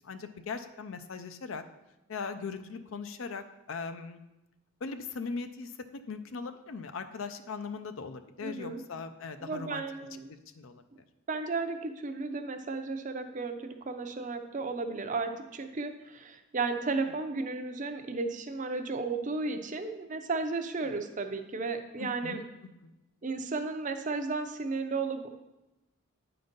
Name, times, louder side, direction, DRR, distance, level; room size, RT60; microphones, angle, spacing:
voice 1, 0.0-1.6 2.1-4.2 4.8-9.8 10.3-10.8 16.9-17.0 20.8-20.9 22.0-22.4 22.8-22.9, left 4 dB, 65° left, 10 dB, 0.5 m, -39 dB
voice 2, 8.4-8.8 9.4-10.4 11.3-22.4 23.2-25.3, right 3 dB, 35° right, 7 dB, 0.5 m, -34 dB
8.7 x 3.9 x 5.2 m, 0.98 s
head